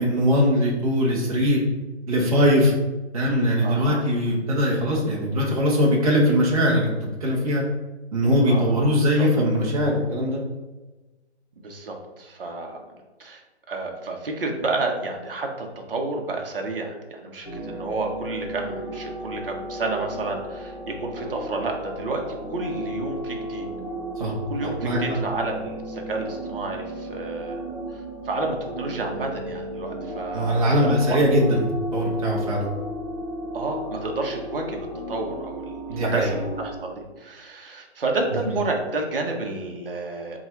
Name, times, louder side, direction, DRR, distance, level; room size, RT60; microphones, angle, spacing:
voice 1, 0.0-1.6 2.1-2.7 3.1-7.6 8.1-10.4 24.2-24.3 24.8-25.0 30.3-31.6 31.9-32.7 35.9-36.3, equal, 35° right, -5 dB, 0.8 m, -21 dB
voice 2, 3.6-4.0 8.5-9.3 11.6-12.8 13.2-13.4 13.7-23.7 24.5-31.2 33.5-34.8 35.1-40.5, right 3 dB, 55° right, 2 dB, 0.9 m, -30 dB
sound 1, 17.4-36.8, right 1 dB, 30° left, 0.8 m, -34 dB
3.8 x 2.4 x 4.4 m, 1.2 s
hypercardioid pair, 175°, 33 cm